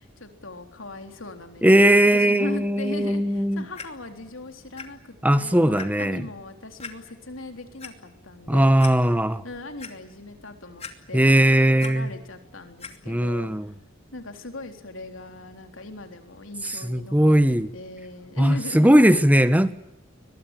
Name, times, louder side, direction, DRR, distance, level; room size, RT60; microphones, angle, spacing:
voice 1, 0.0-8.9 9.4-13.7 14.1-19.0, left 2 dB, 70° left, 5 dB, 3.8 m, -40 dB
voice 2, 1.6-3.6 5.2-6.2 8.5-9.4 11.1-12.1 13.1-13.7 16.8-17.7 18.4-19.7, right 1 dB, 10° right, 12 dB, 1.3 m, -19 dB
Clock, 3.7-3.8 4.8-4.9 5.3-5.4 5.8-5.9 6.8-6.9 7.6-7.9 8.4-8.5 8.8-8.9 9.4-9.9 10.8-11.3 11.6-11.9 12.8-12.9 13.6-13.7, left 5 dB, 30° left, 2.7 m, -38 dB
22.5 x 22.0 x 8.9 m, 0.82 s
head